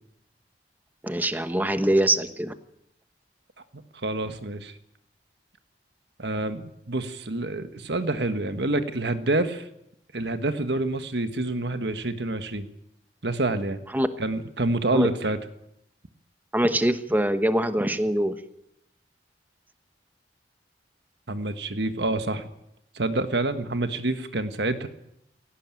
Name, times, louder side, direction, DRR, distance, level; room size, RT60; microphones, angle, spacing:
voice 1, 1.0-2.5 13.9-14.1 14.9-15.1 16.5-18.4, right 1 dB, 10° right, 10 dB, 1.1 m, -23 dB
voice 2, 4.0-4.7 6.2-9.7 10.1-12.7 13.2-13.8 14.2-15.4 21.3-22.5 22.9-24.9, right 2 dB, 70° right, 9 dB, 1.5 m, -27 dB
17.5 x 16.5 x 9.0 m, 0.82 s
head